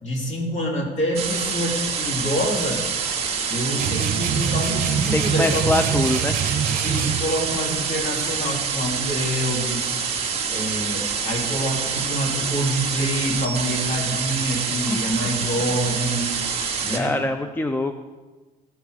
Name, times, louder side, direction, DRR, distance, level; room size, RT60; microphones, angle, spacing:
voice 1, 0.0-2.8 3.5-5.9 6.8-9.9 10.5-16.3 16.8-17.2, equal, 45° left, -1 dB, 3.1 m, -26 dB
sound 1, 1.1-17.0, right 6 dB, 40° right, 2.1 m, -26 dB
sound 2, 3.8-7.3, right 8 dB, 55° right, 0.8 m, -25 dB
voice 2, 5.1-6.4 14.9-15.3 16.9-18.0, left 2 dB, 10° left, 8 dB, 0.5 m, -24 dB
14.5 x 5.9 x 6.4 m, 1.3 s
cardioid pair, 110°, 17 cm